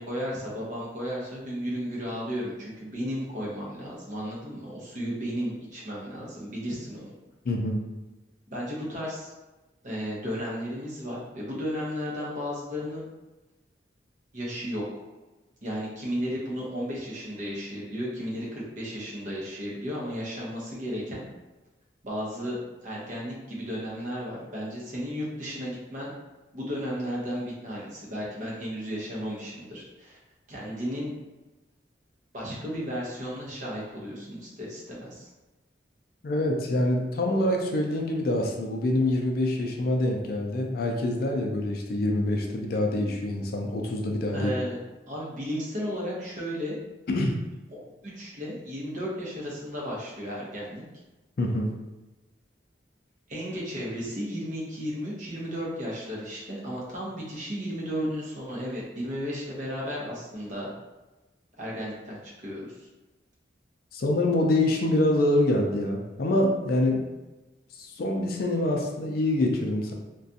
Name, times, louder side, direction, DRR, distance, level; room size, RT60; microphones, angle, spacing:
voice 1, 0.0-7.1 8.5-9.3 9.8-13.0 14.3-15.0 15.6-21.2 22.0-26.1 26.5-30.2 30.5-31.1 32.3-35.3 44.3-44.8 45.1-46.8 47.7-50.8 53.3-60.7 61.6-62.9, equal, 45° right, -5 dB, 0.7 m, -34 dB
voice 2, 7.4-7.8 36.2-44.5 47.1-47.4 51.4-51.7 63.9-67.0 67.8-69.9, left 1 dB, 55° left, 2 dB, 0.4 m, -25 dB
2.4 x 2.2 x 2.6 m, 1.1 s
head